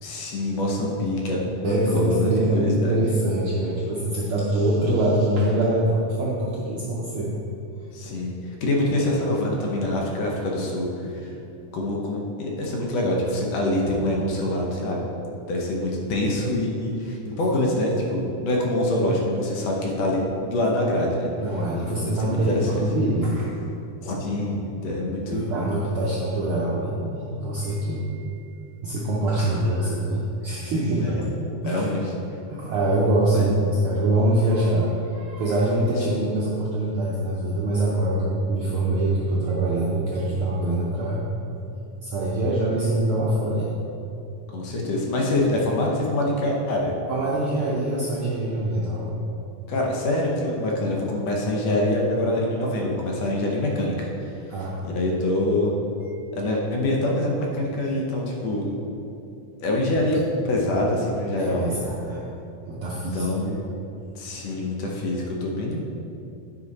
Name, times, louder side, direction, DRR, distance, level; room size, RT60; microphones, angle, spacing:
voice 1, 0.0-3.0 7.9-11.3 11.7-15.1 15.5-21.3 22.2-22.8 24.0-25.5 31.0-31.3 31.7-32.0 33.3-33.5 36.1-36.3 44.5-46.9 49.7-55.8 56.3-58.7 59.6-61.7 63.1-63.6 64.2-65.8, left 1 dB, 65° left, -2 dB, 1.9 m, -25 dB
voice 2, 1.6-7.3 11.1-11.2 17.7-17.8 21.4-23.6 25.3-28.2 28.8-31.1 31.6-32.1 32.5-41.2 41.6-43.7 47.1-49.2 54.5-54.8 61.4-62.2 62.7-63.3, right 1 dB, 85° right, -6 dB, 1.2 m, -24 dB
9.8 x 5.6 x 4.1 m, 2.7 s
omnidirectional pair, 3.7 m